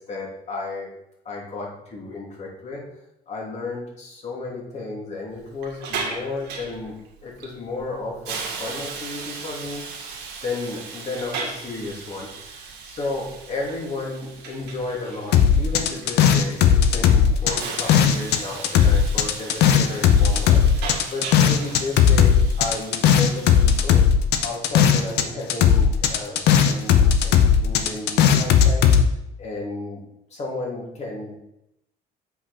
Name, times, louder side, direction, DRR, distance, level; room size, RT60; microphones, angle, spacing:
voice 1, 0.1-0.9 1.2-2.8 3.3-9.9 10.4-24.0 24.4-28.9 29.4-30.0 30.3-31.3, left 3 dB, 40° left, -2 dB, 2.6 m, -33 dB
Hiss, 5.3-23.9, right 5 dB, 90° right, 1.8 m, -37 dB
sound 1, 15.3-18.4 18.6-25.2 25.5-29.0, left 8 dB, 75° left, 0.8 m, -17 dB
7.9 x 5.3 x 4.2 m, 0.82 s
cardioid pair, 110°, 17 cm